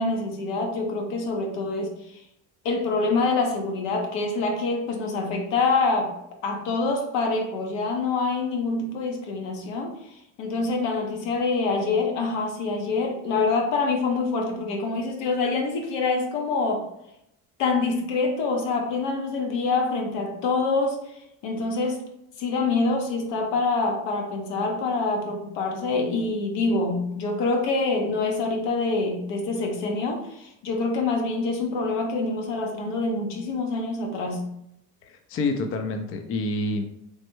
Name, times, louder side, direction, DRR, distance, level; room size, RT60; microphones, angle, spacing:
voice 1, 0.0-2.2 2.6-6.1 6.4-16.9 17.6-21.0 21.4-22.0 22.4-34.5, left 3 dB, 75° left, 2 dB, 0.8 m, -26 dB
voice 2, 35.0-36.9, left 2 dB, 35° left, 5 dB, 0.4 m, -28 dB
3.1 x 2.1 x 3.1 m, 0.81 s
supercardioid pair, 85°, 40 cm